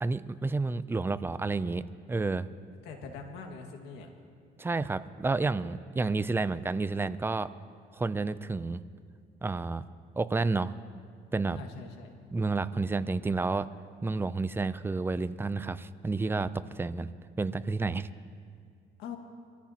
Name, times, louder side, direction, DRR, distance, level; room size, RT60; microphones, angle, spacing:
voice 1, 0.0-2.5 4.6-7.5 7.9-8.8 9.4-9.8 10.2-10.7 11.3-11.6 12.3-13.7 14.0-18.1, right 3 dB, 15° right, 14 dB, 0.4 m, -30 dB
voice 2, 2.8-4.1 11.5-12.1 19.0-19.2, left 5 dB, 90° left, 3 dB, 1.9 m, -43 dB
24.0 x 14.5 x 2.9 m, 2.2 s
cardioid pair, 110°, 17 cm